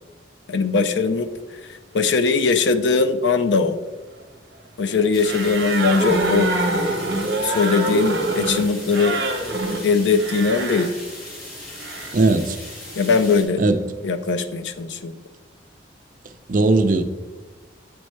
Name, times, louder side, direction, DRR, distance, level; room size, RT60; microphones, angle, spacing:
voice 1, 0.5-1.3 1.9-3.8 4.8-6.5 7.3-9.2 9.8-10.9 13.0-13.6 14.0-15.1, left 4 dB, 75° left, 0.5 m, -20 dB
sound 1, 5.1-13.4, left 1 dB, 50° left, 1.7 m, -38 dB
sound 2, 5.2-10.9 11.8-12.2, right 2 dB, 65° right, 0.8 m, -25 dB
voice 2, 12.1-12.6 13.6-13.8 16.5-17.0, right 2 dB, 45° right, 0.4 m, -18 dB
9.1 x 4.4 x 3.2 m
head